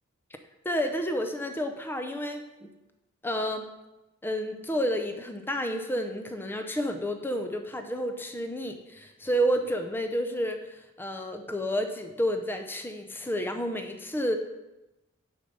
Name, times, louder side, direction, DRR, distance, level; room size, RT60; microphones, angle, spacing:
voice 1, 0.6-2.7 3.2-3.7 4.2-14.4, equal, 10° left, 5 dB, 0.6 m, -30 dB
10.0 x 5.2 x 5.4 m, 0.99 s
head